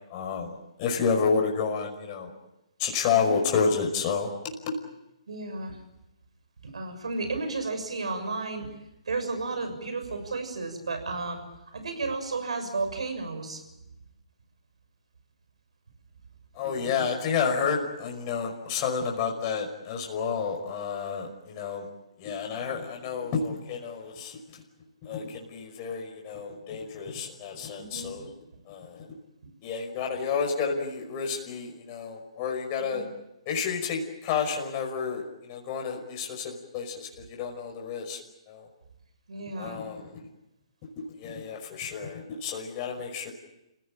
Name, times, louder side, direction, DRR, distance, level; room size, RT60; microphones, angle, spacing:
voice 1, 0.1-0.5 0.8-2.3 2.8-4.3 4.6-4.7 16.6-21.9 22.2-24.4 25.0-28.3 28.7-29.1 29.6-33.1 33.5-35.2 35.5-38.2 38.5-38.7 39.6-40.1 41.2-43.3, left 6 dB, 30° left, 1 dB, 5.6 m, -30 dB
voice 2, 5.3-5.8 6.6-8.7 9.1-11.4 11.7-13.6 27.8-28.3 32.9-33.1 39.3-39.8, right 3 dB, 75° right, 7 dB, 6.7 m, -33 dB
29.5 x 17.0 x 8.9 m, 0.92 s
hypercardioid pair, 140°, 3 cm